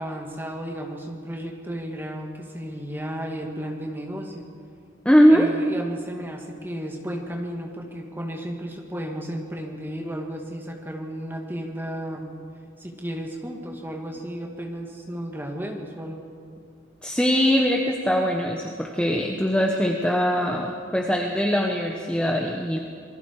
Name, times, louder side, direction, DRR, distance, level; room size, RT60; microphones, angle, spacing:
voice 1, 0.0-4.5 5.3-12.3 12.8-16.2, equal, 10° right, 1 dB, 2.2 m, -33 dB
voice 2, 5.0-5.5 17.0-22.8, equal, 5° left, 1 dB, 1.1 m, -21 dB
27.5 x 20.0 x 4.9 m, 2.4 s
head